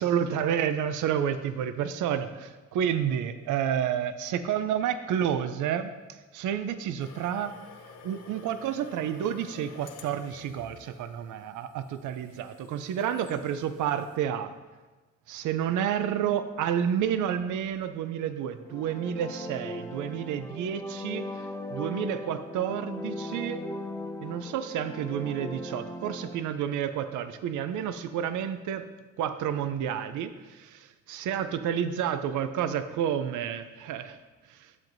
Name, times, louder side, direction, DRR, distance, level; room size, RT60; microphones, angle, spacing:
voice 1, 0.0-5.9 6.3-7.6 8.0-14.5 15.3-21.4 21.7-23.6 24.2-28.9 29.2-34.2 34.5-34.7, right 9 dB, 80° right, 11 dB, 0.5 m, -30 dB
sound 1, 7.0-14.2, left 5 dB, 55° left, 0.9 m, -51 dB
sound 2, 18.5-26.4, left 1 dB, 10° left, 0.8 m, -38 dB
12.0 x 7.3 x 2.6 m, 1.2 s
cardioid pair, 90°, 30 cm